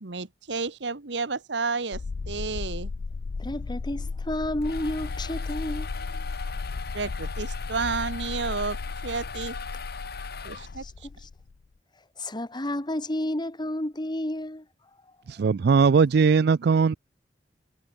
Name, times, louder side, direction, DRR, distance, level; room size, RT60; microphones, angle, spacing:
voice 1, 0.0-2.9 6.9-9.5 10.4-10.8, right 4 dB, 80° right, 1.3 m, -31 dB
sound 1, 1.9-11.5, left 4 dB, 80° left, 0.5 m, -35 dB
voice 2, 3.4-6.5 10.8-11.3 12.2-14.7, left 1 dB, 25° left, 2.0 m, -31 dB
sound 2, 4.4-11.0, left 5 dB, 60° left, 5.0 m, -40 dB
voice 3, 15.3-17.0, right 5 dB, 65° right, 0.4 m, -19 dB
head